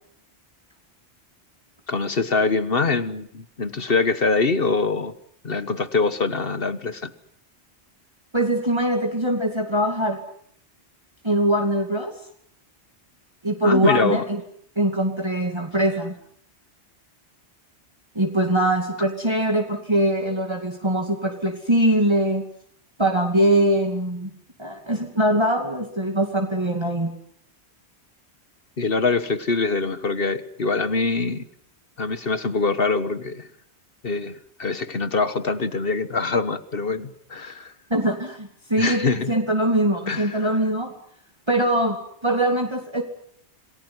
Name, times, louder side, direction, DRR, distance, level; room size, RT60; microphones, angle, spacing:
voice 1, 1.9-5.1 5.4-7.1 13.6-14.2 28.8-31.4 32.0-33.5 34.0-37.7 38.8-39.3 40.1-40.4, left 4 dB, 55° left, 13 dB, 1.5 m, -24 dB
voice 2, 8.3-10.2 11.2-12.1 13.4-14.4 14.8-16.1 18.2-22.4 23.0-24.3 24.6-27.1 37.9-40.9 41.5-43.0, right 1 dB, 25° right, 2 dB, 2.5 m, -22 dB
27.5 x 19.5 x 9.6 m, 0.66 s
omnidirectional pair, 1.1 m